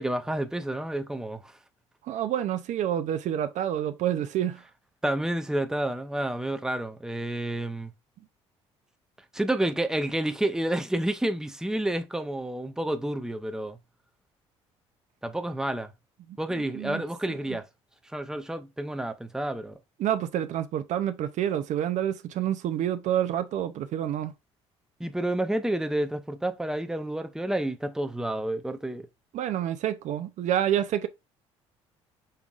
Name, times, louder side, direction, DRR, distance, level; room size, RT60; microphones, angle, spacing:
voice 1, 0.0-1.5 5.0-7.9 9.3-13.8 15.2-15.9 16.4-17.6 18.1-19.7 25.0-29.1, right 1 dB, 5° right, 0.7 m, -29 dB
voice 2, 2.0-4.6 16.3-17.0 17.3-17.6 20.0-24.3 29.3-31.1, right 10 dB, 55° right, 0.5 m, -28 dB
5.5 x 3.6 x 2.4 m
hypercardioid pair, 55°, 14 cm